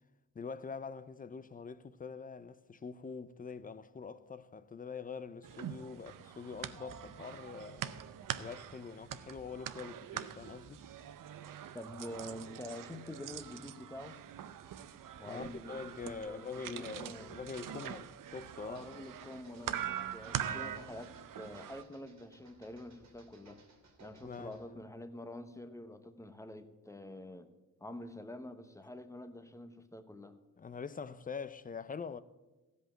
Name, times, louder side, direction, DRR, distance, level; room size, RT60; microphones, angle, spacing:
voice 1, 0.3-8.0 8.4-10.8 15.2-18.8 24.2-24.8 30.6-32.2, left 5 dB, 25° left, 0.5 m, -44 dB
sound 1, 5.4-21.8, right 10 dB, 85° right, 0.6 m, -43 dB
voice 2, 11.7-14.2 15.2-17.3 18.7-23.6 24.0-27.5 27.8-30.4, left 1 dB, 10° left, 0.9 m, -47 dB
sound 2, 18.6-24.7, right 3 dB, 60° right, 2.2 m, -61 dB
15.0 x 5.4 x 8.7 m
wide cardioid pair, 110°, 32 cm